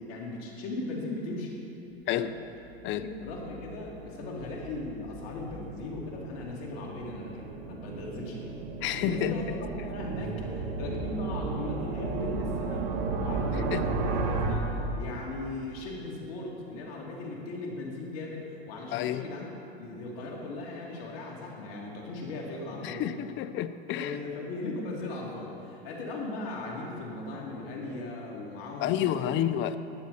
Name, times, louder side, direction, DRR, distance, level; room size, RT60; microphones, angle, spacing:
voice 1, 0.0-1.6 2.0-2.3 3.0-8.5 9.0-12.9 13.2-19.5 19.8-23.1 23.9-29.3, left 2 dB, 65° left, -2 dB, 2.8 m, -38 dB
voice 2, 2.1-2.4 2.8-3.0 8.8-9.4 13.7-13.8 18.9-19.2 22.8-24.2 28.8-29.8, left 11 dB, 35° left, 13 dB, 0.5 m, -29 dB
sound 1, 2.6-15.6, right 3 dB, 60° right, 1.4 m, -34 dB
14.5 x 9.7 x 4.2 m, 2.9 s
hypercardioid pair, 110°, 33 cm